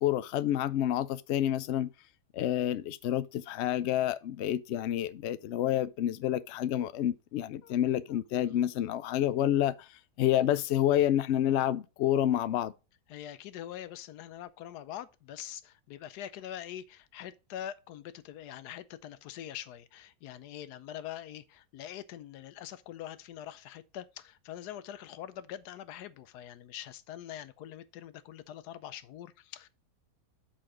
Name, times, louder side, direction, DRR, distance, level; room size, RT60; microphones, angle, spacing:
voice 1, 0.0-1.9 2.3-9.9 10.2-12.7, left 11 dB, 65° left, 0.7 m, -28 dB
voice 2, 13.1-29.7, left 11 dB, 85° left, 1.2 m, -44 dB
7.7 x 4.3 x 6.0 m
omnidirectional pair, 1.7 m